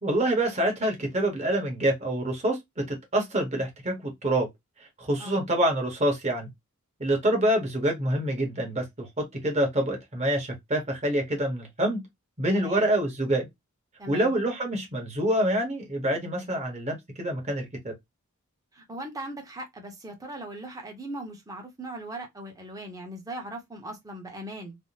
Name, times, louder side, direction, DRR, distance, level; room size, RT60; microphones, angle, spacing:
voice 1, 0.0-4.5 5.0-6.5 7.0-12.0 12.4-13.5 14.1-17.9, right 1 dB, 30° right, 1.1 m, -26 dB
voice 2, 12.5-12.9 14.0-14.3 18.7-24.8, right 1 dB, 15° right, 0.9 m, -39 dB
3.5 x 2.1 x 2.7 m
head